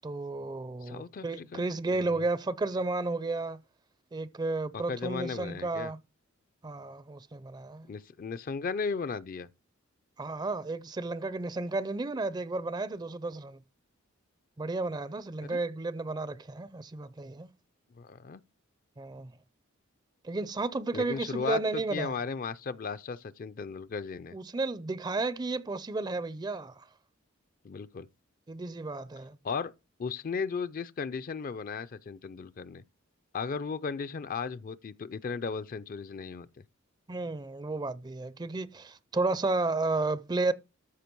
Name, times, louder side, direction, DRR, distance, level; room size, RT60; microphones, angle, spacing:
voice 1, 0.0-3.6 4.1-6.0 6.6-7.9 10.2-13.6 14.6-17.5 19.0-19.3 20.2-22.1 24.3-26.9 28.5-29.4 37.1-40.5, right 3 dB, 20° right, 0.4 m, -32 dB
voice 2, 0.8-1.6 1.9-2.2 4.7-5.9 7.9-9.5 15.4-15.6 17.9-18.4 20.9-24.4 27.6-28.1 29.4-29.7 30.0-32.8 33.3-36.5, left 5 dB, 40° left, 0.4 m, -36 dB
13.5 x 5.1 x 4.5 m
head